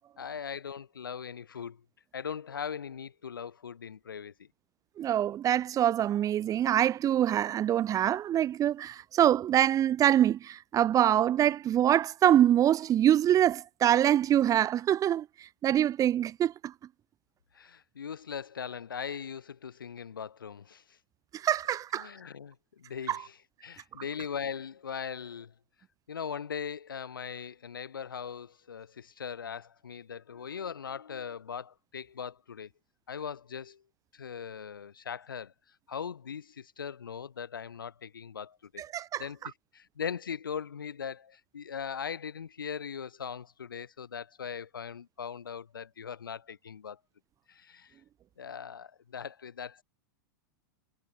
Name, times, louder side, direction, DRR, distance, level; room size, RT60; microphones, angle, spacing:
voice 1, 0.2-1.8 2.1-4.5 17.5-21.0 21.9-23.3 23.6-25.5 26.1-32.7 33.1-33.8 34.1-35.5 35.9-38.8 39.2-47.0 47.5-47.9 48.4-49.8, left 7 dB, 90° left, 7.2 m, -40 dB
voice 2, 5.0-16.7 21.3-22.1 23.1-23.2 38.8-39.2, right 11 dB, 30° right, 3.8 m, -25 dB
hypercardioid pair, 110°, 11 cm